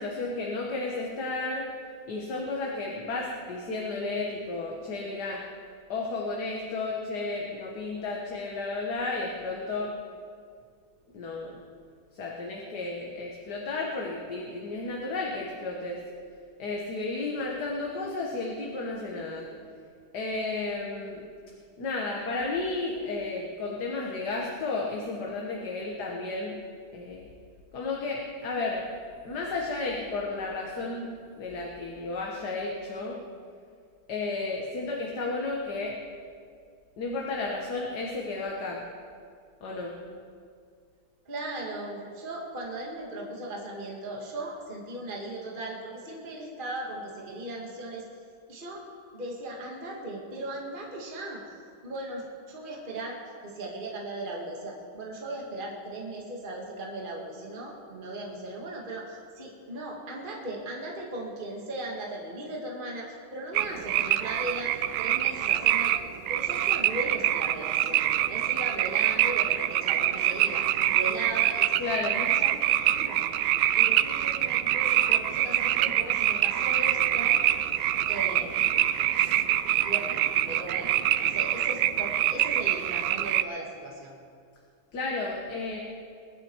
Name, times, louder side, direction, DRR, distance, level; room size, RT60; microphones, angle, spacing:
voice 1, 0.0-1.7 2.1-5.4 5.9-9.9 11.1-11.6 12.1-16.0 16.6-19.5 20.1-21.2 21.8-26.6 26.9-27.3 27.7-28.8 29.2-33.2 34.1-36.0 37.0-38.8 39.6-40.0 71.8-72.2 84.9-85.8, left 3 dB, 55° left, -1 dB, 1.9 m, -33 dB
voice 2, 41.3-48.0 48.5-48.8 49.1-51.6 51.8-65.9 66.3-71.8 72.1-72.6 72.8-73.2 73.8-77.4 78.1-78.9 79.8-84.1, right 1 dB, 25° right, -2 dB, 1.9 m, -38 dB
sound 1, 63.5-83.4, right 12 dB, 75° right, 1.0 m, -25 dB
21.5 x 10.5 x 4.6 m, 2.2 s
omnidirectional pair, 2.2 m